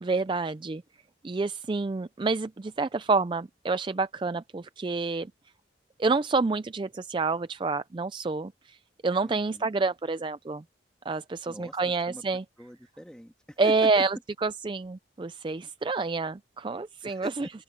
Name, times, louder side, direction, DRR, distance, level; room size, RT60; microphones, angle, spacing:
voice 1, 0.0-0.8 1.2-5.3 6.0-8.8 9.0-10.6 11.1-12.4 13.6-14.2 14.4-17.5, right 3 dB, 25° right, 0.3 m, -28 dB
voice 2, 9.2-9.7 11.5-12.2 12.6-14.2 17.1-17.5, equal, 5° left, 2.2 m, -43 dB
open air
head